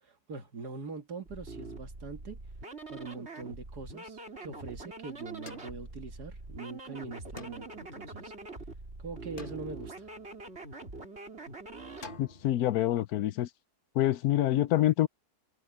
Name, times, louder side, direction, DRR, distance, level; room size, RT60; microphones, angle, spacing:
voice 1, 0.0-2.4 2.9-8.3 9.0-10.1, right 4 dB, 75° right, 2.6 m, -43 dB
sound 1, 1.2-12.1, right 3 dB, 40° right, 3.8 m, -44 dB
sound 2, 5.5-6.6 7.4-8.8 9.4-10.7 12.0-12.6, left 3 dB, 35° left, 1.6 m, -49 dB
voice 2, 12.2-13.5 13.9-15.1, left 13 dB, 75° left, 1.1 m, -26 dB
omnidirectional pair, 1.7 m